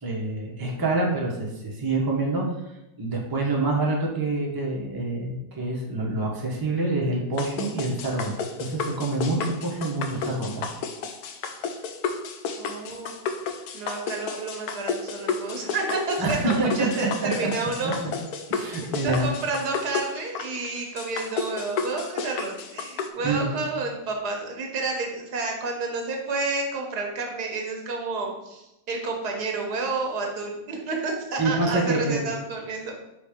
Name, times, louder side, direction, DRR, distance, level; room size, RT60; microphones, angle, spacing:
voice 1, 0.0-2.4 3.0-10.6 16.2-16.7 18.5-19.3 23.2-23.7 31.4-32.3, right 2 dB, 15° right, -2 dB, 0.9 m, -26 dB
sound 1, 7.4-23.1, left 5 dB, 75° left, 1.1 m, -32 dB
voice 2, 12.6-13.1 13.7-17.9 19.0-33.0, right 3 dB, 80° right, 1 dB, 1.6 m, -30 dB
5.2 x 3.7 x 5.0 m, 0.92 s
omnidirectional pair, 1.7 m